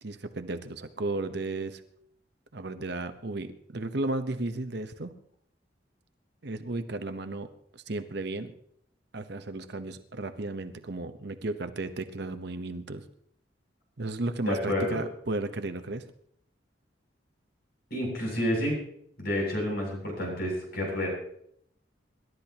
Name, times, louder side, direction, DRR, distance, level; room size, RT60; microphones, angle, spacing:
voice 1, 0.0-1.8 2.5-5.1 6.4-8.5 9.1-13.0 14.0-16.0, right 2 dB, 65° right, 10 dB, 1.0 m, -34 dB
voice 2, 14.5-15.0 17.9-18.8 19.2-21.1, left 1 dB, 60° left, -1 dB, 7.7 m, -29 dB
26.0 x 12.5 x 2.9 m, 0.70 s
head